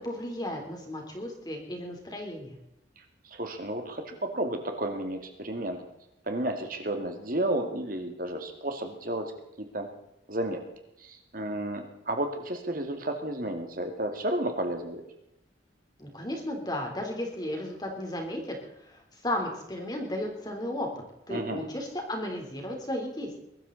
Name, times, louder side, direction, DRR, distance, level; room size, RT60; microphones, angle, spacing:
voice 1, 0.0-2.6 16.0-18.6 18.8-20.9 21.3-23.4, left 1 dB, 20° left, 2 dB, 3.7 m, -34 dB
voice 2, 3.2-5.8 6.3-9.3 9.6-9.9 10.3-10.6 11.0-15.0 21.3-21.7, right 1 dB, 45° right, 5 dB, 2.2 m, -32 dB
22.0 x 13.5 x 4.1 m, 0.85 s
head